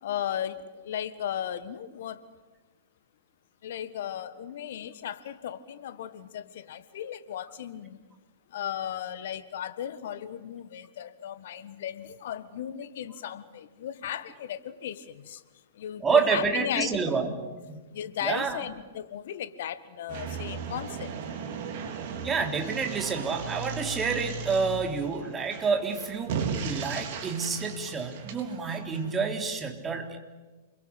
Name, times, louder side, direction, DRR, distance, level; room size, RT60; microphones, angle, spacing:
voice 1, 0.0-2.3 3.6-8.0 8.5-15.4 15.7-17.0 17.9-21.1, left 10 dB, 55° left, 13 dB, 1.6 m, -36 dB
voice 2, 16.0-17.4 17.7-17.8 18.2-18.6 22.2-30.2, right 5 dB, 15° right, 4 dB, 3.4 m, -28 dB
sound 1, 20.1-29.2, right 5 dB, 45° right, 4.0 m, -36 dB
29.0 x 22.0 x 8.5 m, 1.3 s
figure-of-eight pair, 105°, 0 cm